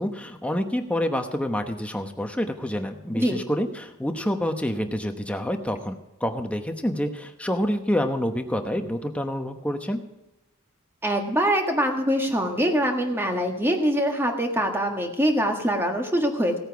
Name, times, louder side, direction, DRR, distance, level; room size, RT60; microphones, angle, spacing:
voice 1, 0.0-10.0, equal, 5° left, 5 dB, 1.0 m, -27 dB
voice 2, 11.0-16.6, equal, 10° right, 3 dB, 1.6 m, -24 dB
16.5 x 8.9 x 4.7 m, 0.99 s
head